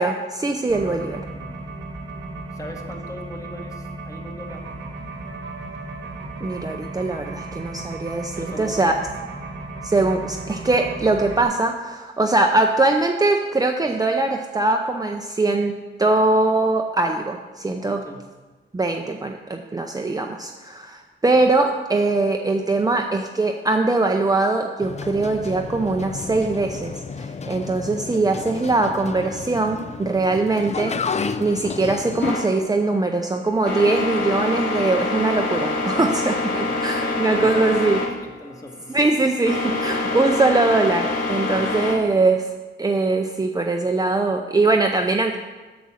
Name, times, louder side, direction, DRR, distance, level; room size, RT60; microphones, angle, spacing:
voice 1, 0.0-1.2 6.4-8.9 9.8-18.0 18.7-31.0 31.4-38.0 38.9-42.5 42.8-45.4, right 2 dB, 20° right, 3 dB, 0.6 m, -21 dB
sound 1, 0.7-11.4, right 2 dB, 80° right, 1.3 m, -35 dB
voice 2, 1.3-1.7 2.5-4.6 8.4-8.9 17.8-18.3 36.0-37.9 38.2-38.9 41.4-41.9, left 1 dB, 15° left, 1 dB, 1.4 m, -40 dB
sound 2, 24.8-32.3, left 5 dB, 35° left, 0.5 m, -31 dB
sound 3, 32.2-41.9, left 3 dB, 80° left, 2.3 m, -26 dB
8.1 x 7.0 x 6.4 m, 1.3 s
wide cardioid pair, 110°, 19 cm